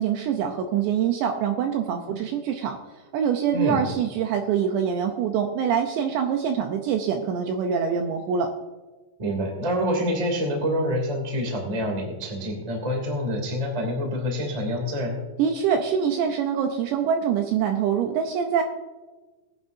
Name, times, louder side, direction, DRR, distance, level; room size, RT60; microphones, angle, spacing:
voice 1, 0.0-2.8 3.1-8.5 15.4-18.6, right 7 dB, 80° right, 4 dB, 2.7 m, -24 dB
voice 2, 9.2-15.2, equal, 20° right, 1 dB, 1.0 m, -27 dB
20.5 x 10.0 x 2.7 m, 1.2 s
omnidirectional pair, 5.7 m